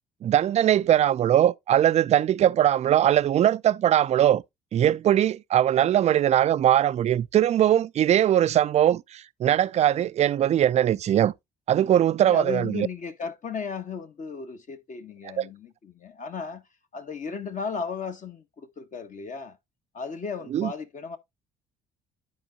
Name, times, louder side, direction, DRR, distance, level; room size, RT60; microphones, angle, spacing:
voice 1, 0.2-4.4 4.7-11.3 11.7-12.9 15.4-15.5 20.5-20.7, right 11 dB, 35° right, 0.4 m, -21 dB
voice 2, 12.2-16.6 16.9-19.6 19.9-21.2, left 5 dB, 40° left, 1.3 m, -35 dB
12.5 x 4.4 x 2.5 m
hypercardioid pair, 55°, 19 cm